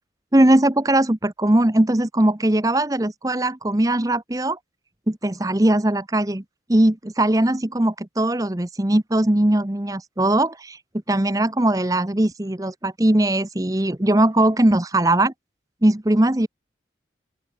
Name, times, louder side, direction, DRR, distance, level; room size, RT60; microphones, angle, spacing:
voice 1, 0.3-4.6 5.1-6.4 6.7-10.8 11.1-15.3 15.8-16.5, right 1 dB, 20° right, 0.8 m, -20 dB
open air
head